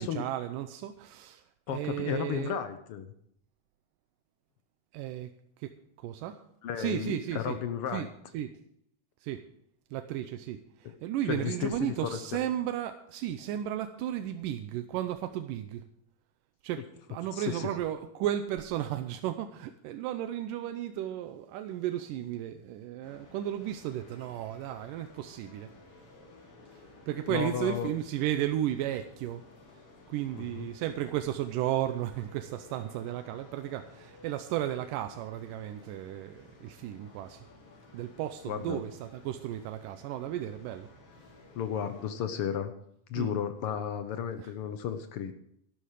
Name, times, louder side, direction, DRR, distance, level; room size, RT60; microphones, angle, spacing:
voice 1, 0.0-2.6 4.9-5.3 5.6-6.4 6.8-7.6 7.9-8.1 8.3-8.6 9.2-9.4 9.9-15.8 16.6-25.7 26.7-29.4 30.1-37.4 37.9-40.9 43.2-43.3 44.4-44.5, right 12 dB, 85° right, 8 dB, 2.3 m, -34 dB
voice 2, 1.7-3.1 6.6-8.1 10.8-10.9 11.3-12.4 17.3-17.7 27.3-27.9 30.4-30.7 38.5-38.8 41.5-42.7 43.1-45.3, left 8 dB, 85° left, 9 dB, 1.2 m, -33 dB
sound 1, 23.0-42.1, left 2 dB, 45° left, 3.3 m, -55 dB
13.0 x 12.5 x 4.8 m, 0.72 s
omnidirectional pair, 3.7 m